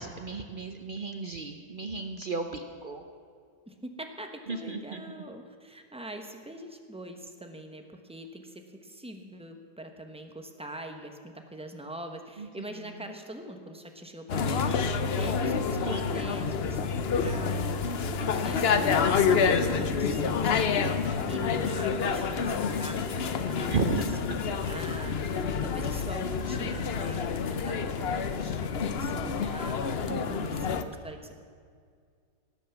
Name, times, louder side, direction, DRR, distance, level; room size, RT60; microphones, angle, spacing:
voice 1, 0.0-3.0 4.5-5.0 12.4-12.5 15.8-16.1 19.3-19.5 23.7-24.4 30.1-30.7, right 4 dB, 80° right, 6 dB, 0.4 m, -34 dB
voice 2, 3.7-24.0 24.2-24.3 24.6-25.2 25.6-31.4, right 1 dB, 5° right, 4 dB, 0.6 m, -43 dB
sound 1, 14.3-30.8, left 5 dB, 60° left, 0.6 m, -28 dB
18.0 x 8.3 x 7.1 m, 2.1 s
omnidirectional pair, 1.9 m